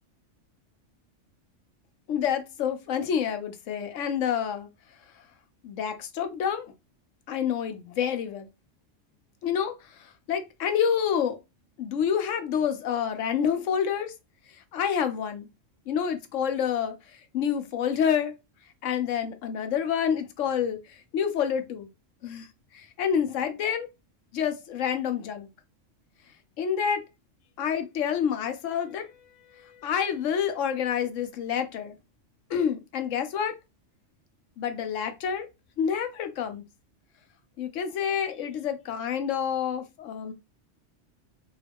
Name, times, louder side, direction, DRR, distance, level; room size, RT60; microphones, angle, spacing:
voice 1, 2.1-4.7 5.6-6.7 7.3-8.5 9.4-11.4 11.8-14.1 14.7-15.5 15.9-18.3 18.8-21.9 22.2-22.5 22.7-23.9 24.3-25.5 26.6-27.0 27.6-29.1 29.5-32.0 32.5-33.6 34.6-35.5 35.8-36.6 37.6-40.3, left 8 dB, 80° left, 1.0 m, -28 dB
3.7 x 2.4 x 3.4 m
omnidirectional pair, 1.3 m